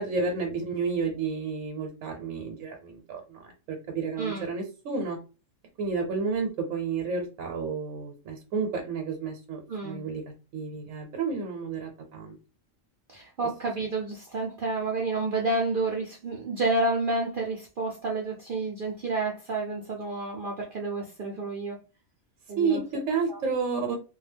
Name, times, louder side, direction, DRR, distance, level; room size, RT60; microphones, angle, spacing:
voice 1, 0.0-5.2 5.8-10.2 10.5-12.4 22.5-24.0, right 4 dB, 75° right, 1.0 m, -31 dB
voice 2, 9.7-10.0 13.1-21.8 22.5-22.8 23.3-23.4, right 2 dB, 60° right, 0.6 m, -30 dB
2.3 x 2.1 x 3.3 m
omnidirectional pair, 1.4 m